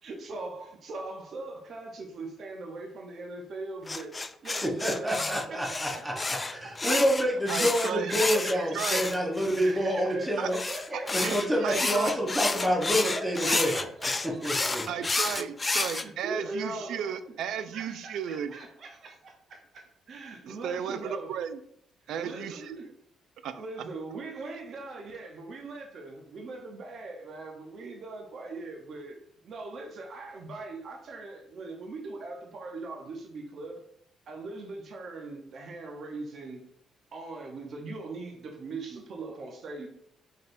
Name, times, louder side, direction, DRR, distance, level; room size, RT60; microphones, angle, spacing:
voice 1, 0.0-6.5 6.8-6.9 7.9-8.8 9.6-12.2 12.6-15.0 15.7-17.3 17.7-21.4 22.2-22.9 23.5-29.2 29.4-33.8 34.3-36.6 37.1-39.9, right 3 dB, 60° right, 2 dB, 0.7 m, -41 dB
sound 1, 3.9-9.7 10.5-16.0, left 3 dB, 25° left, 0.3 m, -30 dB
voice 2, 4.6-6.1 6.5-10.6 10.9-13.8 14.4-14.8, equal, 10° right, -2 dB, 0.9 m, -28 dB
voice 3, 7.5-8.1 8.7-9.0 10.4-10.5 11.2-12.1 13.4-13.7 14.9-18.5 20.5-21.6 22.1-22.8 23.4-23.5, right 8 dB, 80° right, 12 dB, 0.3 m, -34 dB
4.2 x 3.2 x 2.6 m, 0.68 s
cardioid pair, 90°, 0 cm